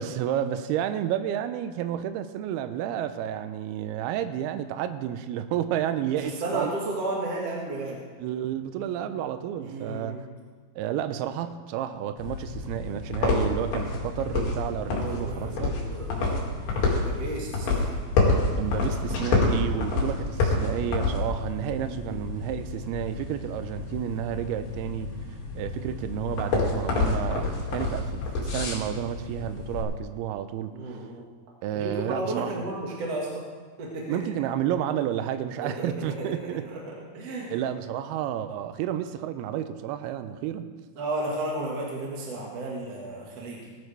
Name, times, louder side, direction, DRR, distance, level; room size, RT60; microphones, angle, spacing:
voice 1, 0.0-6.7 8.2-10.2 10.8-15.7 18.6-25.1 25.5-31.0 31.6-32.6 34.1-36.6 37.5-40.7, right 10 dB, 85° right, 9 dB, 2.3 m, -31 dB
voice 2, 6.1-8.0 9.0-9.1 9.6-10.2 14.9-17.9 21.9-22.2 30.7-31.2 31.7-33.4 33.8-34.2 35.6-36.8 37.1-37.6 41.0-43.7, right 2 dB, 50° right, -3 dB, 2.0 m, -33 dB
sound 1, 12.2-29.8, left 3 dB, 75° left, 4.6 m, -28 dB
19.0 x 12.0 x 3.4 m, 1.5 s
omnidirectional pair, 5.2 m